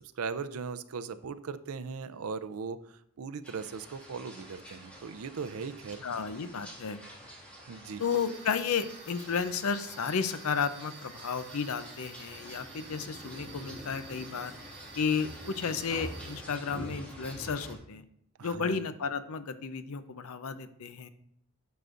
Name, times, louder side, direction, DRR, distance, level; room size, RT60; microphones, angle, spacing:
voice 1, 0.2-2.8 3.2-6.0 7.7-8.0 18.4-18.8, right 5 dB, 85° right, 12 dB, 0.5 m, -38 dB
sound 1, 3.4-17.8, equal, 5° left, 2.0 m, -47 dB
voice 2, 6.0-7.0 8.0-14.5 15.0-18.0 18.4-21.1, left 6 dB, 90° left, 12 dB, 0.6 m, -33 dB
sound 2, 8.0-16.4, right 5 dB, 50° right, 2.3 m, -51 dB
11.0 x 6.7 x 2.5 m, 0.73 s
head